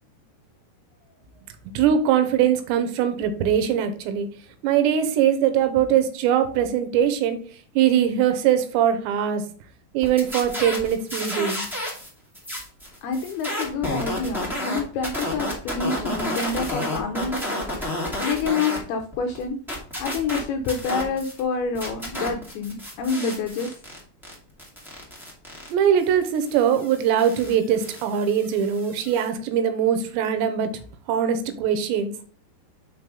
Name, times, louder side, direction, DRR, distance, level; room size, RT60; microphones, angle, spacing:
voice 1, 1.7-4.3 4.6-7.4 7.8-9.4 9.9-11.6 25.7-30.7 31.1-32.1, right 9 dB, 85° right, 9 dB, 2.9 m, -21 dB
sound 1, 10.0-12.1 12.3-18.8 19.1-21.4 21.7-29.3, left 1 dB, 5° right, 0.3 m, -31 dB
voice 2, 13.0-17.5 18.2-19.6 20.0-23.8, left 4 dB, 80° left, 4 dB, 2.3 m, -27 dB
6.0 x 4.7 x 5.3 m, 0.44 s
omnidirectional pair, 5.2 m